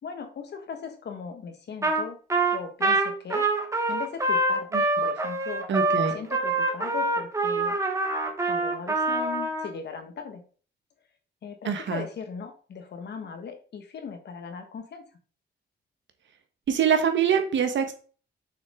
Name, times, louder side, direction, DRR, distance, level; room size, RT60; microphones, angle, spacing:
voice 1, 0.0-2.2 2.5-3.5 3.9-4.7 5.0-5.7 6.0-7.8 8.4-10.4 11.4-15.0, left 6 dB, 60° left, 6 dB, 1.5 m, -38 dB
Trumpet, 1.8-2.0 2.3-9.7, right 2 dB, 15° right, 1.1 m, -25 dB
voice 2, 5.7-6.1 11.6-12.0 16.7-17.9, right 7 dB, 65° right, 7 dB, 1.4 m, -24 dB
6.4 x 6.4 x 3.8 m, 0.40 s
wide cardioid pair, 165°, 20 cm